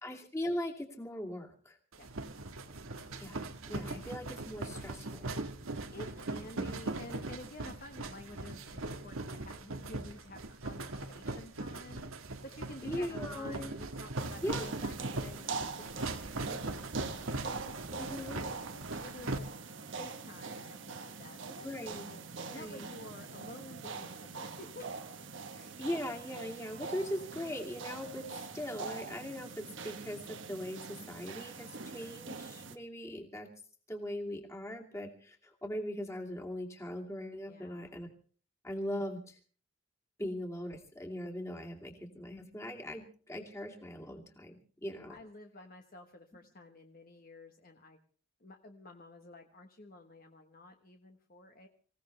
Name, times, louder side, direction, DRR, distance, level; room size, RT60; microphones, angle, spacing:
voice 1, 0.0-1.8 3.2-5.3 12.8-13.7 14.4-14.7 18.0-18.4 21.6-22.1 22.5-22.9 25.5-28.3 28.5-33.5 33.9-38.1 38.6-39.4 40.2-45.2, left 1 dB, 15° left, 1 dB, 2.5 m, -40 dB
sound 1, 1.9-19.4, right 2 dB, 85° right, 1.5 m, -40 dB
voice 2, 5.9-12.0 12.4-18.0 18.3-19.5 20.0-22.2 22.5-25.0 25.3-25.8 37.5-37.9 45.1-48.0 48.4-51.7, left 1 dB, 45° left, 4 dB, 1.2 m, -51 dB
sound 2, 14.2-32.8, right 4 dB, 65° right, 1.2 m, -43 dB
25.5 x 16.5 x 3.3 m, 0.42 s
head